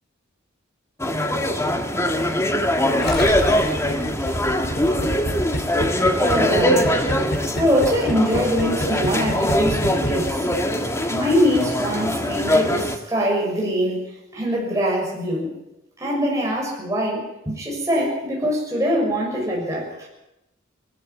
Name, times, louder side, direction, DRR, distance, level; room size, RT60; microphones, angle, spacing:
sound 1, 1.0-13.0, left 1 dB, 15° left, 1.5 m, -22 dB
Gurgling, 3.0-10.8, equal, 50° left, 4.4 m, -27 dB
voice 1, 6.2-7.0 7.5-10.5 11.1-15.5 16.0-20.1, equal, 15° right, -3 dB, 6.5 m, -23 dB
19.5 x 14.0 x 9.5 m, 0.91 s
head